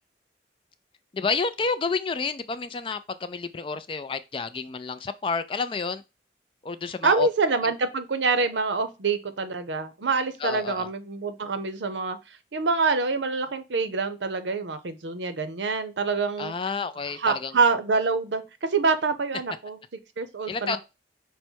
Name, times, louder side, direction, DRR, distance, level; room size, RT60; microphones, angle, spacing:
voice 1, 1.1-6.0 6.6-7.3 10.4-10.9 16.4-17.6 20.5-20.8, left 4 dB, 30° left, 0.3 m, -30 dB
voice 2, 7.0-16.5 17.2-18.4 18.7-19.8 20.2-20.8, right 4 dB, 90° right, 0.7 m, -26 dB
5.4 x 2.1 x 4.4 m
head